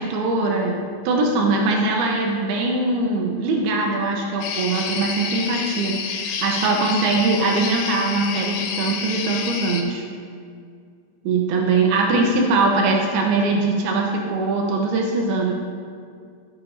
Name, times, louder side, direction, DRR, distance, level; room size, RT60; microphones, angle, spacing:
voice 1, 0.0-10.0 11.2-15.5, right 3 dB, 85° right, 0 dB, 2.8 m, -21 dB
sound 1, 4.4-9.8, left 6 dB, 70° left, 2.0 m, -29 dB
14.0 x 8.9 x 2.6 m, 2.2 s
omnidirectional pair, 4.5 m